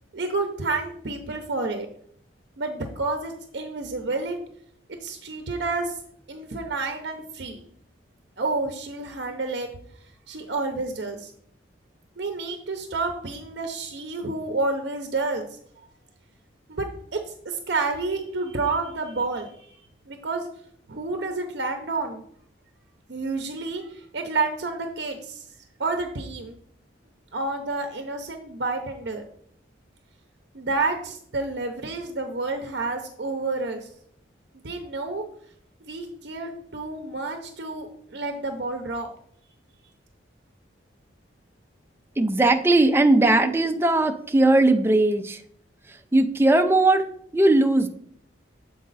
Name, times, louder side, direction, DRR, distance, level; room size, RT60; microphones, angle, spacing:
voice 1, 0.1-1.9 2.6-4.4 5.0-6.0 6.3-7.6 8.4-9.7 10.3-11.3 12.2-15.5 16.7-17.2 17.4-20.5 20.9-22.2 23.1-25.4 25.8-26.6 27.3-29.2 30.5-33.9 34.5-35.3 35.8-39.1, right 3 dB, 60° right, 5 dB, 0.7 m, -29 dB
voice 2, 42.2-45.4 45.9-47.9, right 2 dB, 15° right, 5 dB, 0.4 m, -19 dB
7.4 x 4.7 x 4.0 m, 0.64 s
head